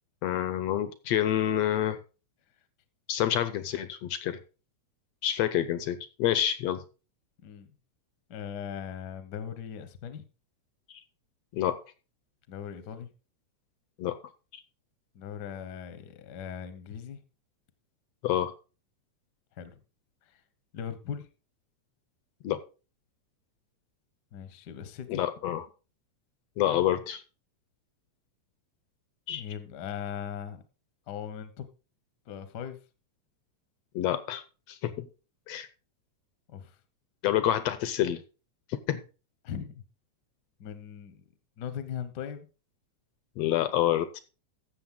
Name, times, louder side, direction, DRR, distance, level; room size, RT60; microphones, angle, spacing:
voice 1, 0.2-2.0 3.1-4.4 5.2-6.8 10.9-11.0 11.5-11.8 14.0-14.2 14.5-14.6 18.2-18.5 22.4-22.6 25.1-25.6 26.6-27.2 29.3-29.4 33.9-34.4 34.7-35.1 35.5-35.7 37.2-38.2 38.9-39.0 43.4-44.2, left 11 dB, 75° left, 1.6 m, -28 dB
voice 2, 7.4-7.7 8.3-10.3 12.5-13.1 15.1-17.2 19.6-19.8 20.3-20.4 20.7-21.3 24.3-25.2 29.3-30.6 31.1-31.7 32.3-32.8 36.5-36.8 39.4-39.8 40.6-41.2 41.6-42.5, left 8 dB, 60° left, 1.1 m, -39 dB
15.0 x 6.7 x 3.8 m
omnidirectional pair, 3.3 m